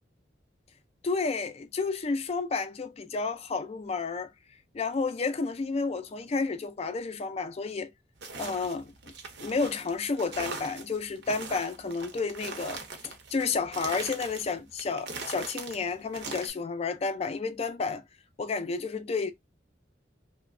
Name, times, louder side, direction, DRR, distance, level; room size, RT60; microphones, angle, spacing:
voice 1, 1.0-4.3 4.7-7.9 8.4-8.9 9.4-18.0 18.4-19.3, left 4 dB, 35° left, 0.4 m, -31 dB
sound 1, 8.2-16.5, right 3 dB, 65° right, 0.7 m, -41 dB
2.9 x 2.1 x 2.4 m
head